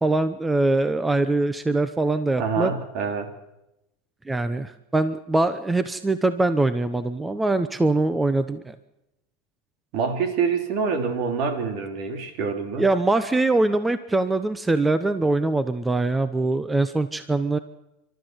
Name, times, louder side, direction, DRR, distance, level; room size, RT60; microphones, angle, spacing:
voice 1, 0.0-2.7 4.3-8.7 12.8-17.6, right 2 dB, 10° right, 12 dB, 0.9 m, -23 dB
voice 2, 2.4-3.3 9.9-12.9, right 5 dB, 60° right, 6 dB, 3.5 m, -26 dB
29.5 x 13.0 x 8.0 m, 0.92 s
supercardioid pair, 120°, 0 cm